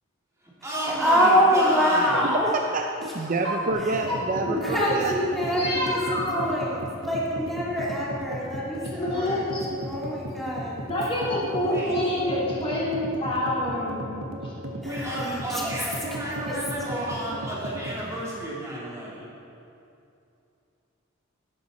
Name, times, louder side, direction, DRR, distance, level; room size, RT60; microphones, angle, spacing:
voice 1, 0.4-2.3 11.6-12.0 14.8-19.2, right 1 dB, 15° right, -7 dB, 2.8 m, -32 dB
voice 2, 1.0-2.5 4.6-6.8 7.0-9.4 9.8-10.8 14.8-15.2 15.5-15.9, equal, ahead, -7 dB, 2.1 m, -25 dB
voice 3, 2.2-5.1, right 2 dB, 40° right, 3 dB, 0.6 m, -28 dB
sound 1, 3.7-18.0, right 1 dB, 85° right, 1.4 m, -36 dB
voice 4, 4.1-4.6 5.6-6.4 9.0-9.6 10.9-14.5, left 1 dB, 25° left, -6 dB, 3.1 m, -27 dB
11.5 x 11.0 x 4.2 m, 2.7 s
head